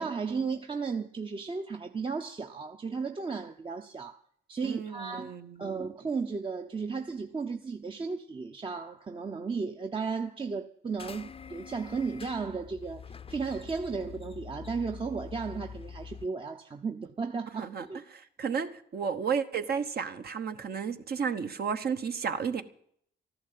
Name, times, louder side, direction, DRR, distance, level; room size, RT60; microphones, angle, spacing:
voice 1, 0.0-4.2 4.5-13.0 13.3-18.0, right 5 dB, 25° right, 0.8 m, -34 dB
voice 2, 4.6-5.7 17.6-22.6, right 6 dB, 50° right, 1.2 m, -33 dB
sound 1, 11.0-16.3, left 6 dB, 30° left, 0.7 m, -45 dB
13.5 x 11.5 x 7.5 m
cardioid pair, 90°, 20 cm